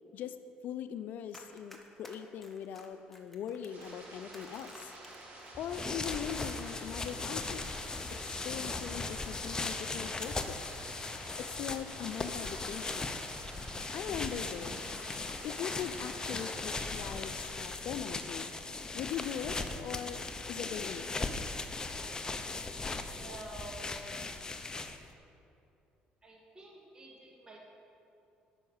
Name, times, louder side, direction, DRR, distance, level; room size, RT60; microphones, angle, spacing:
voice 1, 0.6-4.9 5.6-7.7 8.2-10.6 11.4-13.2 13.7-14.8 15.4-18.5 18.9-20.2 20.5-21.1, left 9 dB, 65° left, 10 dB, 0.6 m, -41 dB
Run, 1.3-12.9 13.2-16.6 16.9-17.2, left 1 dB, 5° left, 1.3 m, -56 dB
sound 1, 3.6-17.5, right 2 dB, 60° right, 2.5 m, -50 dB
sound 2, 5.5-25.1, left 3 dB, 25° left, 0.7 m, -38 dB
voice 2, 23.2-24.2 26.2-27.7, right 2 dB, 25° right, -2 dB, 2.0 m, -49 dB
11.0 x 5.8 x 7.2 m, 2.7 s
cardioid pair, 90°, 3 cm